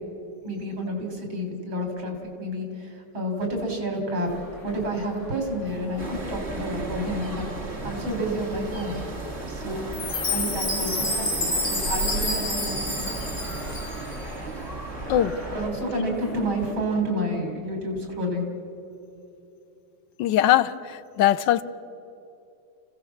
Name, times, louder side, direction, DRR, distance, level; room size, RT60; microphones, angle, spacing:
voice 1, 0.4-4.3 4.6-7.5 7.8-9.0 9.5-9.9 10.3-13.1 15.5-18.5, equal, 75° right, 3 dB, 4.5 m, -29 dB
sound 1, 4.2-16.7, left 1 dB, 15° left, 5.4 m, -42 dB
sound 2, 6.0-15.7, right 3 dB, 35° right, 2.2 m, -34 dB
Chime, 9.9-14.2, left 2 dB, 40° left, 4.2 m, -28 dB
voice 2, 20.2-20.7 21.2-21.6, left 12 dB, 70° left, 11 dB, 1.3 m, -20 dB
27.5 x 16.0 x 7.2 m, 2.8 s
omnidirectional pair, 2.2 m